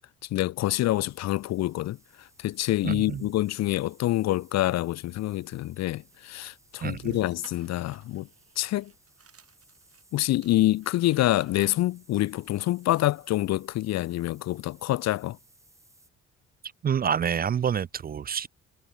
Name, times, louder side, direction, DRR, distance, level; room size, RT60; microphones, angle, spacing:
voice 1, 0.3-2.0 2.4-8.3 8.6-8.9 10.1-15.4, left 15 dB, 60° left, 0.4 m, -26 dB
sound 1, 0.6-16.1, right 2 dB, 10° right, 2.7 m, -61 dB
voice 2, 2.8-3.3 6.8-7.2 16.8-18.5, right 8 dB, 30° right, 0.4 m, -28 dB
sound 2, 5.3-10.1 10.4-13.5, right 7 dB, 50° right, 5.5 m, -58 dB
cardioid pair, 90°, 30 cm